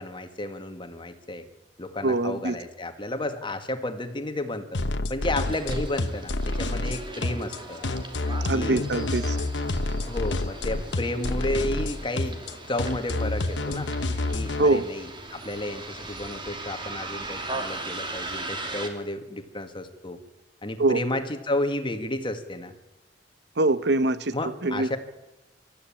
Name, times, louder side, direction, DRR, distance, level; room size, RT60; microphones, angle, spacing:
voice 1, 0.0-1.4 1.8-4.7 5.1-7.8 8.5-8.9 10.1-12.4 12.7-13.9 14.3-20.2 20.6-22.7 24.3-25.0, left 1 dB, 30° left, 7 dB, 2.0 m, -32 dB
voice 2, 2.0-2.6 8.4-9.4 14.6-14.9 20.8-21.0 23.6-24.9, right 2 dB, 70° right, 14 dB, 0.9 m, -23 dB
sound 1, 4.7-14.6, left 2 dB, 75° left, 1.1 m, -28 dB
Bus, 5.4-18.9, right 2 dB, 30° right, 2.9 m, -39 dB
24.5 x 14.0 x 8.8 m, 0.97 s
head